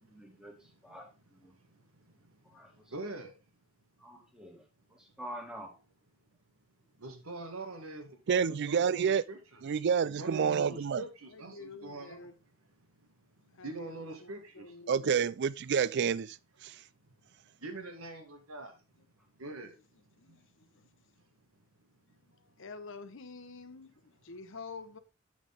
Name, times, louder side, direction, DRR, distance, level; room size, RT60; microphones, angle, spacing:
voice 1, 0.0-1.5 2.4-2.9 4.0-4.6 4.9-5.8, equal, 5° right, 2.0 m, -48 dB
voice 2, 1.5-3.4 7.0-12.3 13.2-14.7 17.1-17.2 17.6-18.8 19.4-19.8 20.1-20.4 22.1-22.2, right 2 dB, 90° right, 1.8 m, -44 dB
voice 3, 8.3-9.2 9.6-11.0 14.9-16.4 16.6-16.7, right 7 dB, 55° right, 0.4 m, -28 dB
voice 4, 11.3-12.4 13.5-15.3 16.6-16.7 19.0-19.1 20.2-20.9 22.1-25.0, left 4 dB, 65° left, 0.9 m, -49 dB
8.3 x 6.4 x 3.6 m
head